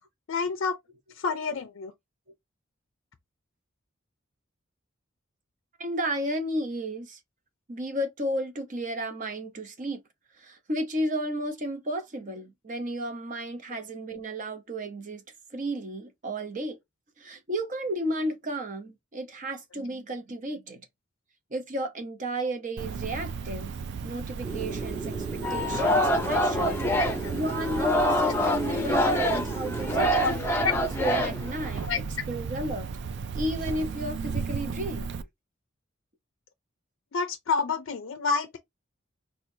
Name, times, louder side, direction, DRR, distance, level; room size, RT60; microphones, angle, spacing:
voice 1, 0.3-0.8 1.2-1.9 27.0-27.3 30.2-30.3 30.6-30.7 31.8-32.0 37.1-38.6, left 5 dB, 65° left, 0.4 m, -28 dB
voice 2, 5.8-7.2 7.7-10.0 10.4-15.2 15.5-16.8 17.2-20.9 21.5-23.7 24.0-26.8 27.3-30.3 31.0-32.9 33.3-35.1, right 1 dB, 40° right, 0.8 m, -33 dB
Cricket, 22.8-35.2, right 5 dB, 60° right, 0.4 m, -35 dB
sound 1, 24.4-30.1, right 3 dB, 10° right, 1.4 m, -36 dB
Singing, 25.4-31.9, left 1 dB, 10° left, 0.7 m, -26 dB
4.3 x 2.3 x 2.7 m
head